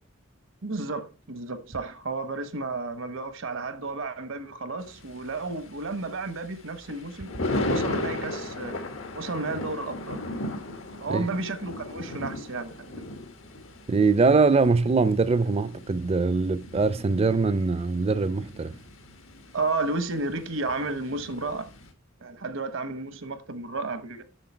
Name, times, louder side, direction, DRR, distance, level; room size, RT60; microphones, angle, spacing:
voice 1, 0.6-8.7 9.1-10.2 11.0-13.0 19.5-21.7 22.2-24.2, right 3 dB, 80° right, 1.1 m, -32 dB
Thunder, 4.8-21.9, left 2 dB, 90° left, 1.6 m, -36 dB
voice 2, 13.9-18.7, right 4 dB, 30° right, 0.4 m, -22 dB
7.9 x 6.5 x 4.5 m
head